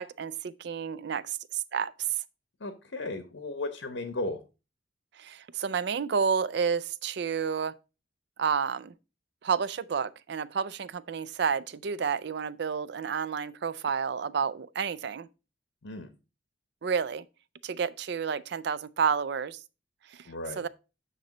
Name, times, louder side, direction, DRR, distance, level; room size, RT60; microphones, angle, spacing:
voice 1, 0.0-2.1 5.2-7.7 8.4-8.9 9.4-15.3 16.8-17.3 17.6-19.6 20.1-20.7, right 6 dB, 60° right, 0.4 m, -30 dB
voice 2, 2.6-4.4 15.8-16.1 20.2-20.6, left 2 dB, 80° left, 0.9 m, -35 dB
9.0 x 3.1 x 5.3 m
head